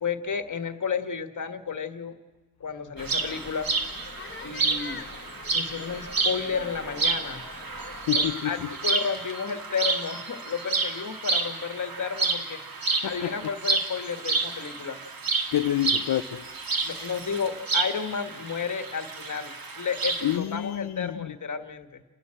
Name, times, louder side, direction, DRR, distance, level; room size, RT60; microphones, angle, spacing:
voice 1, 0.0-2.2 2.6-3.7 4.4-5.0 5.5-7.4 8.1-12.6 13.0-15.0 16.8-22.0, left 6 dB, 50° left, 1.5 m, -32 dB
sound 1, 2.9-8.3, left 4 dB, 30° left, 1.1 m, -44 dB
sound 2, 3.0-20.4, right 4 dB, 60° right, 2.1 m, -30 dB
voice 2, 8.1-8.7 13.0-13.3 15.5-16.5 20.2-21.2, left 12 dB, 75° left, 0.7 m, -28 dB
29.5 x 12.0 x 8.8 m
wide cardioid pair, 105°, 39 cm